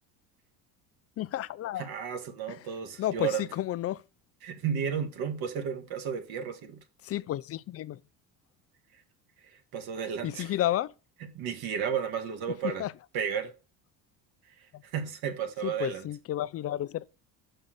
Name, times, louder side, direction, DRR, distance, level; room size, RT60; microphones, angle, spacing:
voice 1, 1.2-1.9 3.0-4.0 7.0-8.0 10.2-10.9 12.6-12.9 14.7-14.8 15.6-17.1, left 13 dB, 40° left, 0.5 m, -31 dB
voice 2, 1.8-3.4 4.4-6.8 9.4-10.5 11.3-12.9 13.1-13.5 14.8-16.0, right 7 dB, 65° right, 2.0 m, -33 dB
6.1 x 5.5 x 6.5 m
cardioid pair, 115°, 39 cm